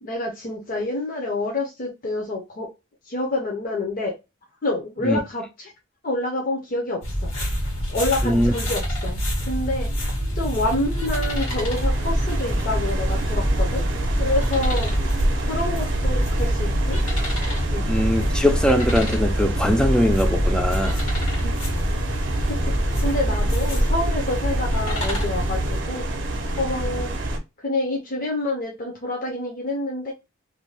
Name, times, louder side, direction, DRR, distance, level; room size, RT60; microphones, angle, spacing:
voice 1, 0.0-2.7 3.1-4.1 4.6-5.7 6.0-7.3 7.9-9.2 9.5-9.9 10.3-13.8 14.2-14.9 15.4-17.0 17.7-17.9 21.4-21.5 22.6-22.7 23.0-26.1 26.6-27.2 27.6-30.1, left 2 dB, 45° left, 0.6 m, -27 dB
sound 1, 7.0-25.8, equal, 85° left, 1.4 m, -25 dB
voice 2, 8.2-8.5 17.9-21.0, equal, 5° left, 0.3 m, -21 dB
sound 2, 8.8-27.4, right 1 dB, 60° right, 0.6 m, -29 dB
2.6 x 2.2 x 3.1 m
head